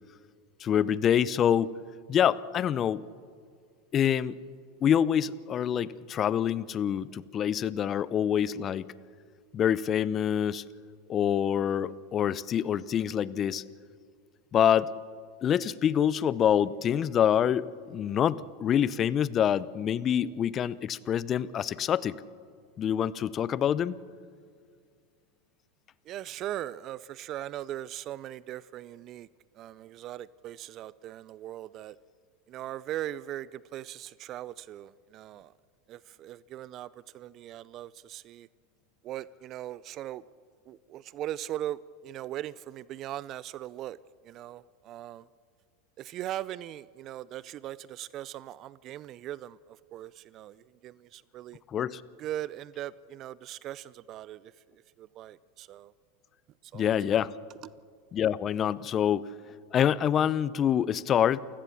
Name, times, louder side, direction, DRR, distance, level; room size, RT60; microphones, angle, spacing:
voice 1, 0.6-1.8 2.1-3.1 3.9-4.4 4.8-8.9 9.5-10.7 11.1-13.6 14.5-14.9 15.4-22.2 22.8-23.9 51.7-52.0 56.7-57.3 58.1-59.3 59.7-61.4, left 9 dB, 35° left, 0.7 m, -26 dB
voice 2, 26.1-29.3 29.6-32.0 32.5-35.5 35.9-38.5 39.0-40.2 40.7-44.0 44.2-45.3 46.0-51.6 52.2-55.9 56.7-56.9, right 13 dB, 45° right, 0.5 m, -39 dB
29.0 x 16.5 x 7.1 m
hypercardioid pair, 100°, 0 cm